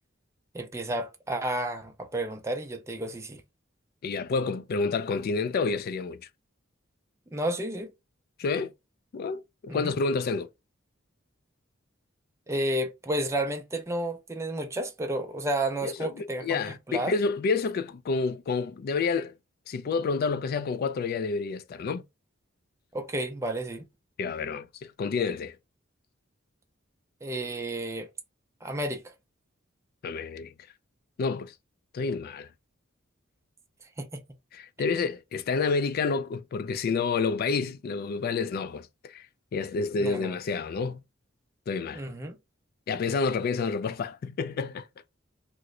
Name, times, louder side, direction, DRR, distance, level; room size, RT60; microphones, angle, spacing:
voice 1, 0.5-3.4 7.3-7.9 9.7-9.9 12.5-16.6 16.9-17.1 22.9-23.8 27.2-28.1 28.6-29.0 34.0-34.2 40.0-40.3 41.9-42.3, right 1 dB, 15° right, 0.5 m, -31 dB
voice 2, 4.0-6.2 8.4-8.7 9.1-10.5 15.8-19.3 19.7-22.0 24.2-25.6 30.0-30.5 31.2-31.5 31.9-32.5 34.5-39.3 39.5-41.0 41.7-42.0 42.9-44.9, left 4 dB, 50° left, 0.3 m, -29 dB
2.9 x 2.1 x 3.6 m
head